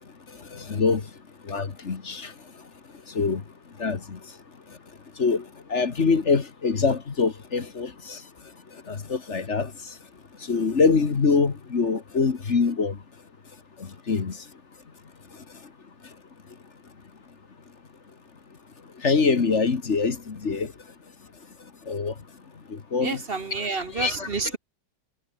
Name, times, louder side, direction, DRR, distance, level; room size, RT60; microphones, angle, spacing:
voice 1, 0.5-1.0 1.5-2.3 3.2-3.4 3.8-4.2 5.2-5.4 5.7-8.2 8.9-9.7 10.5-13.0 14.1-14.3 19.0-20.7 21.9-22.1 22.7-23.2 24.0-24.3, left 4 dB, 45° left, 1.8 m, -24 dB
voice 2, 23.0-24.6, right 4 dB, 35° right, 1.3 m, -29 dB
omnidirectional pair, 1.8 m